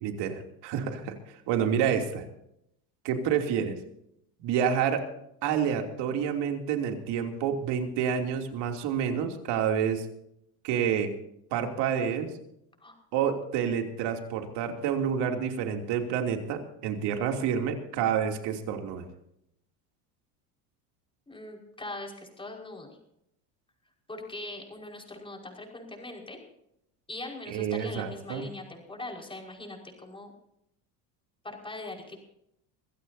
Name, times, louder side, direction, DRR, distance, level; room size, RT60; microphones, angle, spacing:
voice 1, 0.0-2.2 3.0-3.8 4.4-5.0 5.4-10.1 10.6-11.1 11.5-12.3 13.1-19.0 27.5-28.5, right 8 dB, 70° right, 4 dB, 3.1 m, -28 dB
voice 2, 21.3-23.0 24.1-26.4 27.1-30.3 31.4-32.2, left 2 dB, 10° left, 1 dB, 5.3 m, -41 dB
25.0 x 16.0 x 2.8 m, 0.78 s
supercardioid pair, 100°, 43 cm